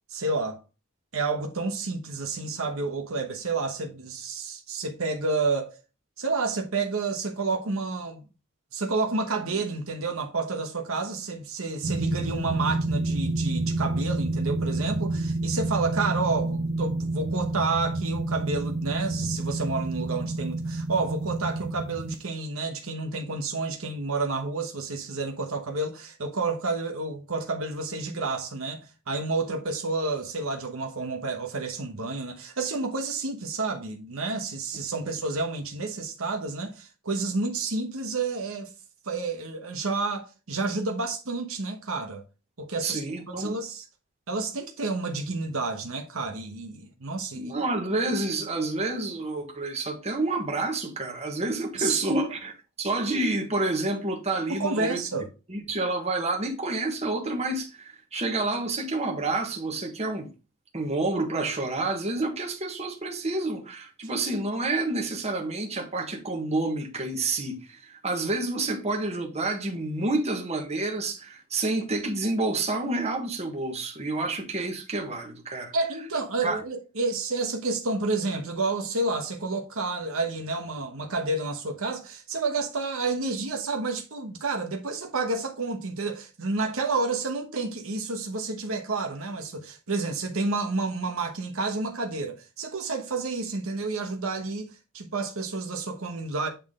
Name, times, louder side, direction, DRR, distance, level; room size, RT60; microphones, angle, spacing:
voice 1, 0.1-0.6 1.1-5.8 6.2-8.2 8.7-38.7 39.0-42.2 42.6-43.0 43.3-43.8 44.3-47.5 51.7-52.3 54.5-55.3 75.7-96.5, right 3 dB, 70° right, 1.1 m, -30 dB
sound 1, 11.8-22.1, right 2 dB, 50° right, 0.6 m, -29 dB
voice 2, 42.8-43.6 47.3-52.5 52.8-55.0 55.5-60.3 60.7-75.7 76.4-76.6, right 2 dB, 30° right, 1.5 m, -29 dB
8.6 x 3.9 x 3.7 m
head